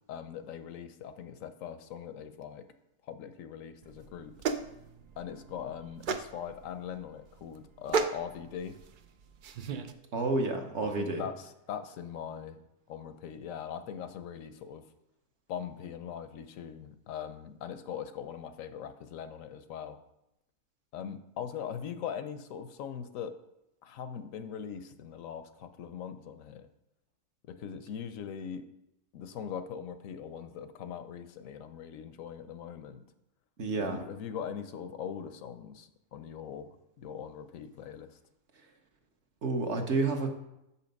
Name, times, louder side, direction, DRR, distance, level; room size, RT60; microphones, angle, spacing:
voice 1, 0.1-2.7 3.0-4.4 5.2-8.8 10.8-12.6 12.9-14.8 15.5-20.0 20.9-23.4 23.8-26.7 27.5-28.7 29.1-33.0 33.8-38.2, left 8 dB, 75° left, 10 dB, 0.9 m, -41 dB
sound 1, 3.8-9.9, right 5 dB, 90° right, 0.4 m, -36 dB
voice 2, 10.1-11.2 33.6-34.0 39.4-40.4, right 3 dB, 55° right, 3 dB, 1.2 m, -30 dB
6.4 x 5.7 x 5.2 m, 0.85 s
omnidirectional pair, 1.5 m